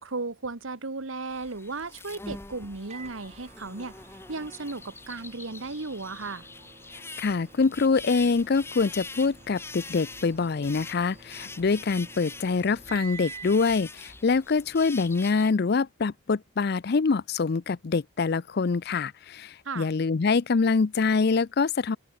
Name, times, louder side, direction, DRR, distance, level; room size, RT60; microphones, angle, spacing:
voice 1, 0.0-3.9 4.3-6.5 19.6-19.9, right 3 dB, 80° right, 1.5 m, -35 dB
sound 1, 1.3-15.5, left 3 dB, 10° left, 0.8 m, -44 dB
Microwave oven, 2.9-13.7, right 5 dB, 35° right, 4.8 m, -49 dB
voice 2, 7.2-22.0, left 4 dB, 50° left, 0.5 m, -25 dB
open air
head